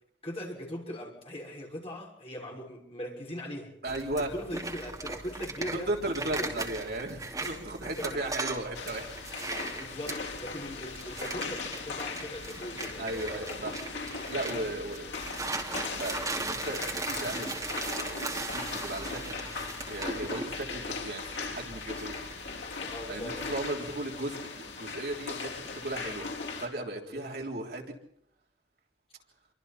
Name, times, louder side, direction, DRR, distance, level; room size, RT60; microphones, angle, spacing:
voice 1, 0.2-3.7 4.3-5.9 6.3-6.6 7.4-8.1 9.7-13.9 22.8-23.6 27.1-27.4, equal, 30° left, -1 dB, 6.4 m, -40 dB
voice 2, 3.8-4.3 5.7-9.1 13.0-13.8 14.3-15.1 16.0-17.6 18.0-19.4 19.9-22.1 23.1-26.3 26.6-27.9, right 1 dB, 55° right, 0 dB, 3.7 m, -36 dB
sound 1, 3.9-23.7, right 2 dB, 20° right, 2.7 m, -39 dB
sound 2, 8.7-26.7, left 4 dB, 75° left, 4.5 m, -39 dB
28.5 x 24.5 x 4.4 m, 0.67 s
head